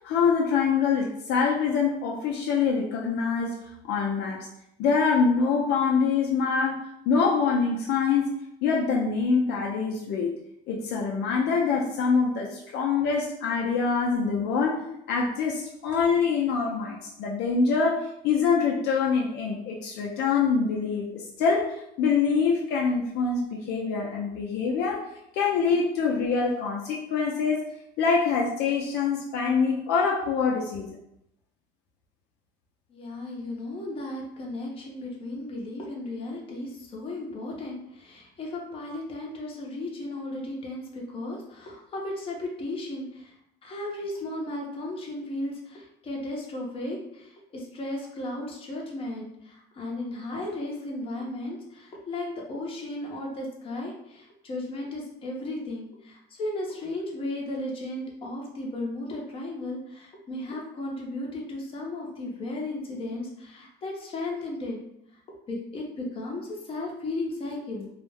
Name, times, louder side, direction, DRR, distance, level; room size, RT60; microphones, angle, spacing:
voice 1, 0.0-3.6 3.8-4.4 4.8-6.8 7.1-8.3 8.6-10.3 10.7-25.0 25.3-27.6 28.0-30.9, left 5 dB, 70° left, -2 dB, 0.5 m, -25 dB
voice 2, 32.9-43.3 43.6-64.8 65.5-67.9, left 2 dB, 30° left, -2 dB, 0.7 m, -35 dB
2.3 x 2.0 x 3.3 m, 0.79 s
cardioid pair, 130°, 18 cm